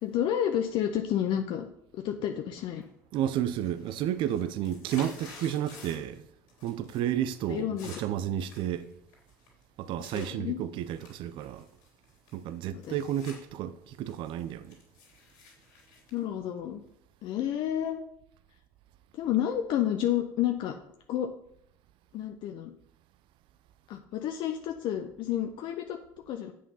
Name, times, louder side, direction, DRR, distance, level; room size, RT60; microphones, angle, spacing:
voice 1, 0.0-1.7 1.9-2.8 7.5-7.9 10.1-10.6 12.8-12.9 16.1-16.8 17.2-18.0 19.1-20.7 21.1-21.3 22.1-22.7 23.9-26.0 26.3-26.5, left 10 dB, 60° left, 0.8 m, -30 dB
sound 1, 2.7-3.2 3.5-6.2 6.5-7.0 7.3-10.3 10.8-13.4 13.8-16.9, left 4 dB, 80° left, 3.6 m, -51 dB
voice 2, 3.1-6.2 6.6-8.9 9.8-11.7 12.3-14.8, right 11 dB, 60° right, 0.7 m, -31 dB
8.5 x 7.6 x 5.6 m
hypercardioid pair, 75°, 9 cm